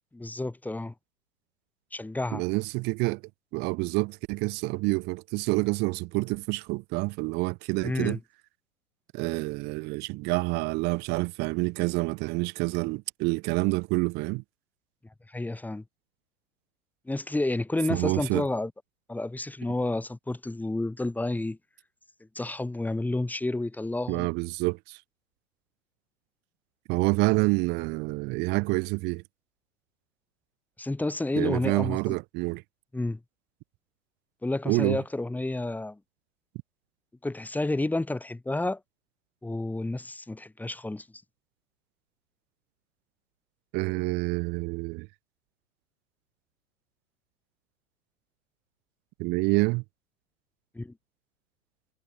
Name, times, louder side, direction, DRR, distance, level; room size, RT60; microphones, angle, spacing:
voice 1, 0.1-0.9 1.9-2.4 7.8-8.2 15.3-15.8 17.1-18.7 19.1-21.6 22.3-24.3 30.8-32.2 32.9-33.2 34.4-36.0 37.2-38.8 39.4-41.1 50.7-50.9, left 2 dB, 5° left, 1.2 m, -30 dB
voice 2, 2.3-3.2 3.5-8.2 9.1-14.4 17.9-18.5 24.1-25.0 26.9-29.2 31.4-32.6 34.7-35.0 43.7-45.1 49.2-49.8, right 27 dB, 25° right, 0.5 m, -27 dB
figure-of-eight pair, 95°, 42 cm